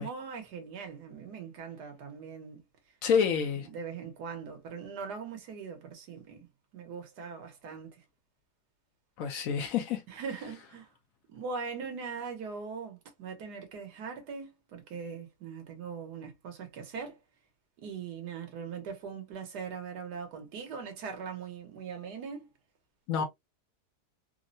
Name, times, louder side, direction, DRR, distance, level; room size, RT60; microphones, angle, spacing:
voice 1, 0.0-2.6 3.7-6.5 6.7-8.0 10.1-10.9 11.3-17.2 17.8-22.5 23.1-23.3, right 5 dB, 85° right, 1.5 m, -41 dB
voice 2, 3.0-3.7 9.2-10.0 23.1-23.2, left 7 dB, 70° left, 0.9 m, -28 dB
3.6 x 2.1 x 2.5 m
omnidirectional pair, 1.7 m